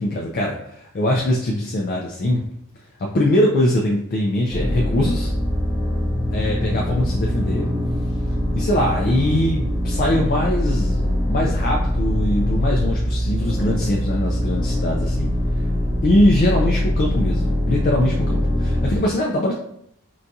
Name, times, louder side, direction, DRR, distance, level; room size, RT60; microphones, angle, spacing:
voice 1, 0.0-2.5 3.0-5.3 6.3-7.7 8.5-15.3 16.0-19.5, left 1 dB, 40° left, -1 dB, 0.3 m, -22 dB
sound 1, 4.5-19.0, left 1 dB, 15° left, 0.8 m, -22 dB
3.9 x 2.3 x 2.6 m, 0.74 s
head